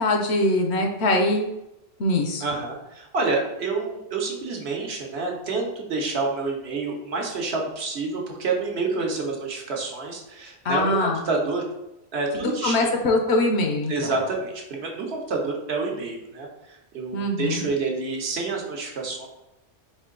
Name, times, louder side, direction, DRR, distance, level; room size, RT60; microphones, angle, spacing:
voice 1, 0.0-1.5 2.0-2.4 10.6-11.2 12.3-14.1 17.1-17.7, left 2 dB, 65° left, 3 dB, 0.9 m, -23 dB
voice 2, 2.4-11.6 12.1-12.9 13.9-19.3, right 3 dB, 65° right, 0 dB, 1.0 m, -28 dB
4.4 x 2.6 x 3.8 m, 0.90 s
omnidirectional pair, 1.2 m